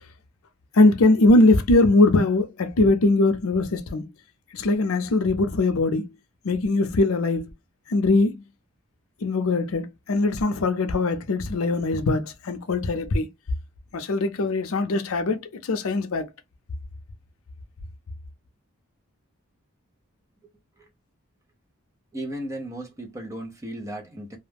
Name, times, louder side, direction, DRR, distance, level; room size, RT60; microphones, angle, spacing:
voice 1, 0.8-4.1 4.5-6.1 6.4-7.5 7.9-8.4 9.2-13.3 13.9-16.3, left 2 dB, 75° left, 0.5 m, -21 dB
voice 2, 22.1-24.4, right 1 dB, 15° right, 0.6 m, -35 dB
2.4 x 2.1 x 3.3 m
head